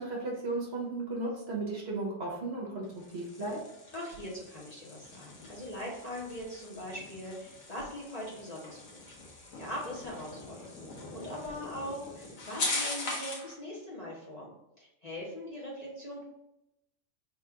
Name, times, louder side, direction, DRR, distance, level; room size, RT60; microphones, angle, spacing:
voice 1, 0.0-2.9 3.1-3.6, right 2 dB, 55° right, -2 dB, 1.2 m, -35 dB
sound 1, 2.8-13.5, left 2 dB, 85° left, 1.4 m, -41 dB
voice 2, 3.9-9.0 9.6-16.2, left 1 dB, 35° left, -5 dB, 1.1 m, -41 dB
3.6 x 2.5 x 4.5 m, 0.88 s
omnidirectional pair, 1.3 m